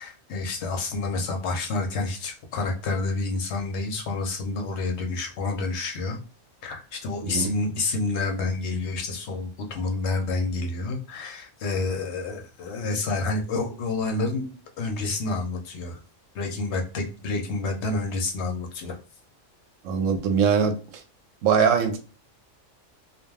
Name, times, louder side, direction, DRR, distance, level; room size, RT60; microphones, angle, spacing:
voice 1, 0.0-6.2 6.6-16.0 16.3-19.0, left 3 dB, 65° left, 0.8 m, -29 dB
voice 2, 19.8-20.8 21.4-22.0, right 6 dB, 80° right, 1.0 m, -21 dB
2.3 x 2.2 x 3.2 m
omnidirectional pair, 1.3 m